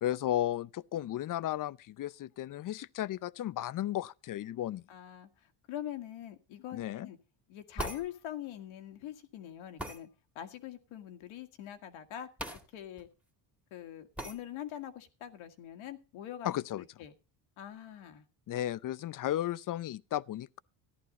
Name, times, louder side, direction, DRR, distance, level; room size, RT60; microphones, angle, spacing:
voice 1, 0.0-4.8 6.7-7.1 16.4-16.8 18.5-20.6, left 12 dB, 40° left, 0.6 m, -34 dB
voice 2, 4.9-7.2 7.5-10.1 10.4-12.3 12.7-13.1 13.7-16.5 16.8-17.1 17.6-18.2, left 11 dB, 80° left, 1.9 m, -43 dB
sound 1, 7.8-8.1 9.8-10.0 12.4-12.6 13.0-13.1 14.2-14.4, equal, 5° right, 2.1 m, -38 dB
14.5 x 11.0 x 3.9 m
cardioid pair, 95°, 48 cm